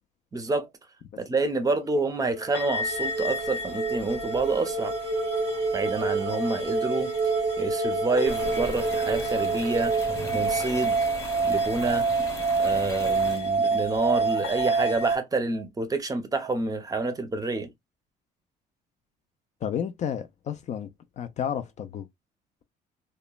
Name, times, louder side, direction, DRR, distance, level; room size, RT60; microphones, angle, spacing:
voice 1, 0.3-0.7 1.2-4.9 5.7-7.1 7.6-10.0 10.3-11.0 11.4-12.1 12.6-17.7, right 3 dB, 20° right, 0.6 m, -28 dB
sound 1, 1.9-11.1, right 2 dB, 80° right, 0.7 m, -31 dB
sound 2, 2.5-15.2, right 3 dB, 80° left, 0.9 m, -28 dB
sound 3, 8.3-13.4, left 1 dB, 15° left, 0.9 m, -38 dB
voice 2, 19.6-20.9 21.2-22.1, left 8 dB, 45° left, 0.4 m, -31 dB
2.9 x 2.1 x 2.2 m
cardioid pair, 110°, 17 cm